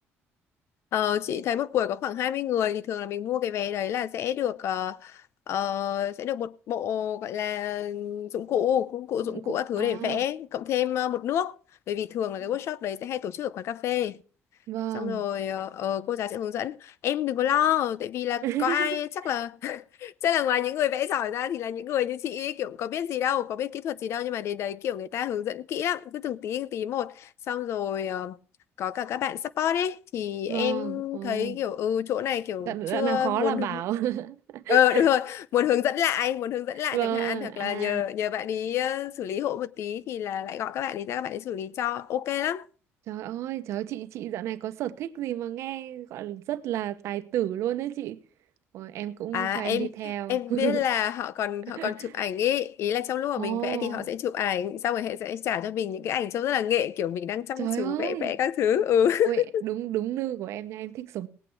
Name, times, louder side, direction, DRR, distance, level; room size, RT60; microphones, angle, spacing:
voice 1, 0.9-11.6 11.9-14.2 14.9-28.4 28.8-33.8 34.7-42.7 49.3-59.6, left 10 dB, 65° left, 0.7 m, -28 dB
voice 2, 9.3-10.2 14.7-15.2 18.4-19.0 30.5-31.6 32.7-35.0 36.9-38.0 43.1-48.2 48.7-50.8 51.8-52.1 53.4-54.1 57.6-58.4 59.2-61.3, right 12 dB, 75° right, 0.9 m, -31 dB
18.5 x 8.7 x 4.5 m
cardioid pair, 130°, 5 cm